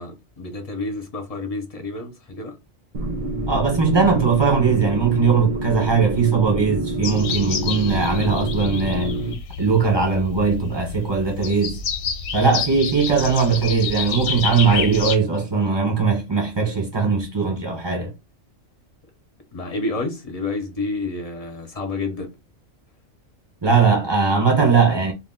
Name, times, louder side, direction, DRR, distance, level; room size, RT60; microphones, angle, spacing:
voice 1, 0.0-2.6 19.5-22.3, left 3 dB, 40° left, 0.6 m, -29 dB
sound 1, 2.9-9.3, right 2 dB, 45° right, 0.5 m, -27 dB
voice 2, 3.5-9.2 9.6-11.8 12.3-18.1 23.6-25.1, right 5 dB, 20° right, 0.9 m, -19 dB
sound 2, 7.0-15.2, left 6 dB, 85° left, 1.1 m, -29 dB
2.4 x 2.3 x 3.6 m
omnidirectional pair, 1.4 m